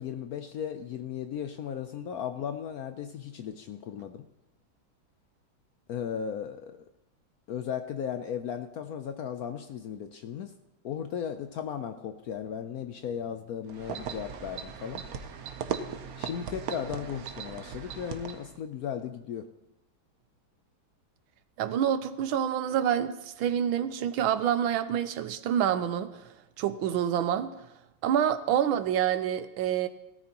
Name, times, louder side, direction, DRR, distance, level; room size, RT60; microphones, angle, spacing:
voice 1, 0.0-4.3 5.9-6.8 7.5-10.5 10.8-15.0 16.2-19.5, left 8 dB, 75° left, 8 dB, 0.8 m, -36 dB
sound 1, 13.7-18.6, right 7 dB, 60° right, 1.0 m, -38 dB
voice 2, 21.6-26.2 26.6-27.5 28.0-29.9, right 9 dB, 80° right, 12 dB, 1.5 m, -27 dB
17.5 x 13.5 x 2.9 m, 0.94 s
omnidirectional pair, 2.2 m